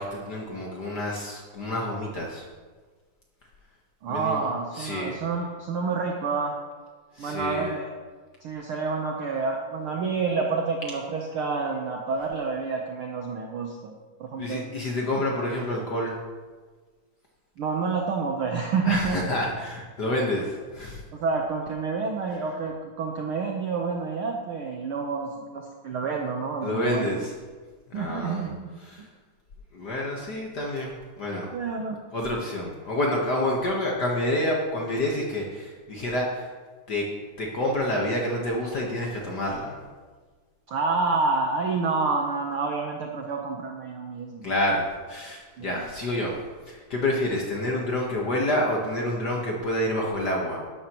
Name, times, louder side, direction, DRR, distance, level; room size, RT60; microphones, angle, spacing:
voice 1, 0.0-2.5 4.1-4.4 4.7-5.2 7.1-7.7 14.3-16.1 18.8-21.0 22.3-22.4 26.6-27.3 27.9-28.5 28.8-29.1 29.7-31.5 32.1-36.5 36.9-37.1 37.4-39.8 44.4-46.4 46.7-50.6, left 1 dB, 65° left, -1 dB, 1.0 m, -28 dB
voice 2, 4.0-6.6 7.2-7.9 8.4-14.7 17.6-19.2 21.1-27.2 27.9-28.7 31.5-32.0 40.7-44.4 45.6-45.9, right 4 dB, 90° right, 1 dB, 1.1 m, -28 dB
12.0 x 11.5 x 3.0 m, 1.4 s
omnidirectional pair, 3.6 m